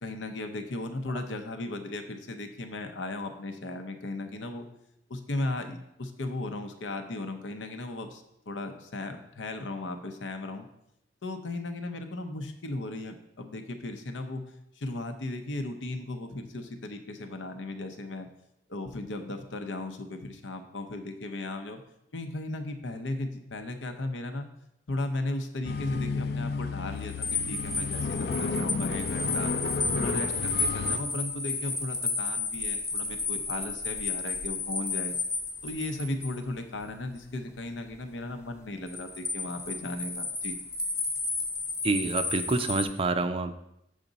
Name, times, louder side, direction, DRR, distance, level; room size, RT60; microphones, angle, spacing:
voice 1, 0.0-4.7 5.1-10.7 11.2-14.4 14.8-18.3 18.7-21.8 22.1-24.5 24.9-29.5 29.9-35.2 35.6-40.6, left 2 dB, 90° left, 7 dB, 0.8 m, -36 dB
sound 1, 25.6-31.0, left 4 dB, 55° left, 0.4 m, -32 dB
sound 2, 27.0-36.4 38.9-42.8, left 3 dB, 15° left, 0.6 m, -32 dB
voice 2, 41.8-43.5, right 3 dB, 30° right, 9 dB, 0.4 m, -27 dB
7.3 x 5.0 x 3.9 m, 0.80 s
head